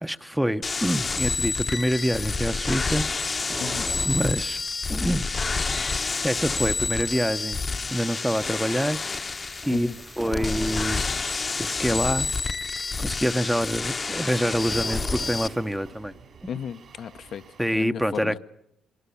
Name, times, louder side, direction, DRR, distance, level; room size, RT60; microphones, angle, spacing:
voice 1, 0.0-3.1 4.0-4.6 4.9-5.3 6.2-7.6 7.9-9.0 9.6-9.9 10.2-11.0 11.6-12.3 13.0-16.1 16.4-16.5 17.6-18.4, equal, 5° right, 0.9 m, -26 dB
sound 1, 0.6-15.5, left 4 dB, 30° left, 1.0 m, -29 dB
sound 2, 1.4-17.8, right 5 dB, 60° right, 6.5 m, -51 dB
sound 3, 2.9-4.7 9.6-11.2 14.1-15.8, right 3 dB, 25° right, 1.3 m, -40 dB
voice 2, 3.6-3.9 9.7-10.0 16.5-17.4 17.7-18.4, left 8 dB, 65° left, 0.8 m, -34 dB
24.5 x 23.0 x 7.1 m
cardioid pair, 90°, 0 cm